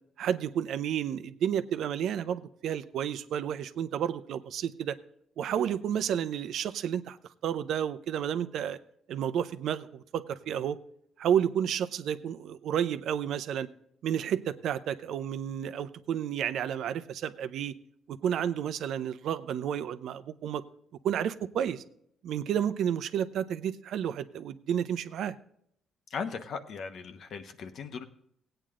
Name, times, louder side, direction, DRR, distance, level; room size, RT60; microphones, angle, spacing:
voice 1, 0.2-5.0 5.4-7.2 7.4-8.8 9.1-10.8 11.2-13.7 14.0-17.8 18.1-20.6 21.0-21.8 22.2-25.3, right 9 dB, 75° right, 12 dB, 0.7 m, -31 dB
voice 2, 26.1-28.0, left 5 dB, 60° left, 8 dB, 1.1 m, -38 dB
17.0 x 9.0 x 3.7 m, 0.70 s
cardioid pair, 85°, 0 cm